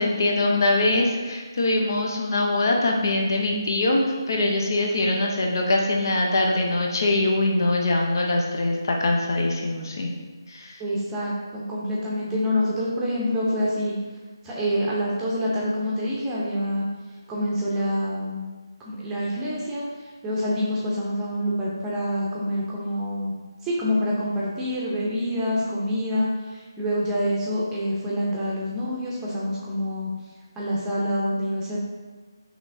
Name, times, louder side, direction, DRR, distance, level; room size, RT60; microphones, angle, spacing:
voice 1, 0.0-10.1 10.5-10.8, left 2 dB, 50° left, 1 dB, 0.7 m, -23 dB
voice 2, 10.8-13.9 14.4-16.8 17.3-18.4 18.8-19.8 20.2-23.3 23.6-30.1 30.6-31.8, equal, 10° right, -6 dB, 0.7 m, -26 dB
5.9 x 3.2 x 2.7 m, 1.4 s
figure-of-eight pair, 155°, 2 cm